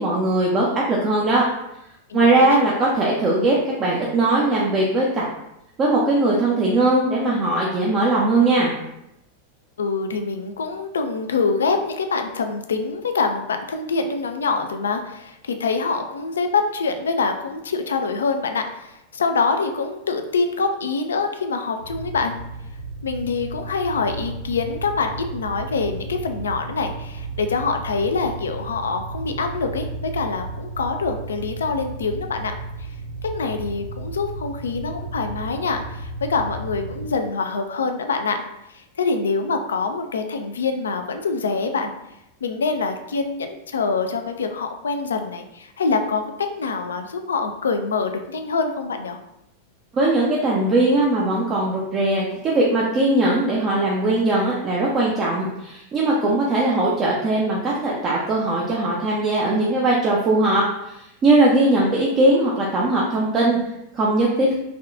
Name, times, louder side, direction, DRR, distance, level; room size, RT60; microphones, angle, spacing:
voice 1, 0.0-1.4 2.1-5.2 5.8-8.7 49.9-63.6 63.9-64.5, right 2 dB, 25° right, -4 dB, 0.5 m, -20 dB
voice 2, 2.1-2.6 9.8-22.4 23.0-32.5 32.8-32.9 33.2-41.9 42.4-49.2, left 4 dB, 70° left, 6 dB, 0.3 m, -25 dB
sound 1, 21.8-37.1, right 3 dB, 70° right, 0.9 m, -34 dB
3.5 x 2.2 x 2.4 m, 0.85 s
figure-of-eight pair, 90°, 0 cm